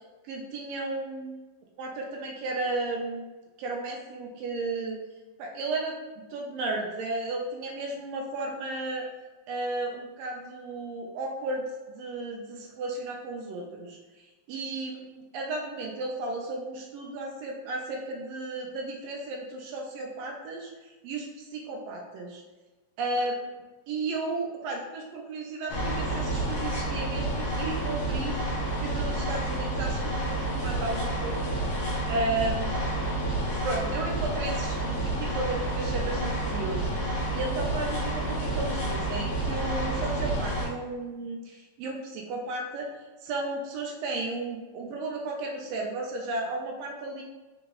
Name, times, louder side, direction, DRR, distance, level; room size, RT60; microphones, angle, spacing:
voice 1, 0.3-1.4 1.8-3.3 3.6-5.0 5.4-6.0 6.3-9.1 9.5-20.7 21.0-22.4 23.0-23.5 23.9-28.3 28.8-31.5 32.1-32.7 33.6-37.0 37.3-42.9 43.2-47.2, right 2 dB, 85° right, -1 dB, 1.4 m, -34 dB
sound 1, 25.7-40.7, right 1 dB, 60° left, 1.6 m, -29 dB
4.9 x 3.0 x 3.5 m, 1.2 s
omnidirectional pair, 3.7 m